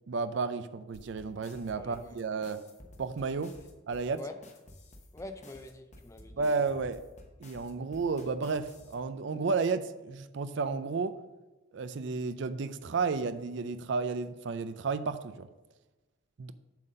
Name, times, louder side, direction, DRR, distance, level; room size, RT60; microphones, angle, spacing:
voice 1, 0.1-2.6 3.0-3.5 3.9-4.2 6.4-7.0 7.4-11.2 11.7-15.5 16.4-16.5, right 4 dB, 55° right, 0.4 m, -32 dB
sound 1, 0.9-8.9, left 1 dB, 35° left, 0.9 m, -53 dB
voice 2, 1.8-2.2 4.2-4.4 5.1-6.7, left 2 dB, 15° left, 0.4 m, -46 dB
7.4 x 4.0 x 6.5 m
head